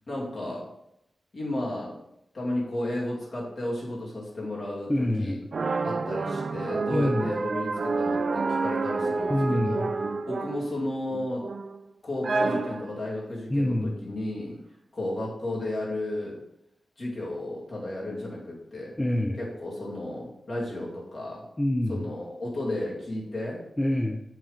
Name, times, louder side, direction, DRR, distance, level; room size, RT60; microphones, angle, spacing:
voice 1, 0.1-0.7 1.3-2.0 2.3-5.4 5.8-9.8 10.3-11.5 12.0-14.6 14.9-16.4 17.0-19.0 19.4-21.5 21.9-23.7, left 1 dB, 60° left, -5 dB, 2.8 m, -33 dB
voice 2, 4.9-5.4 6.9-7.3 9.3-9.9 13.5-14.0 19.0-19.4 21.6-22.1 23.8-24.2, left 1 dB, 15° left, 4 dB, 0.6 m, -26 dB
sound 1, 5.5-10.7 11.1-11.8 12.2-13.0, right 3 dB, 60° right, 0.5 m, -29 dB
7.3 x 3.7 x 5.7 m, 0.80 s
wide cardioid pair, 85°, 0 cm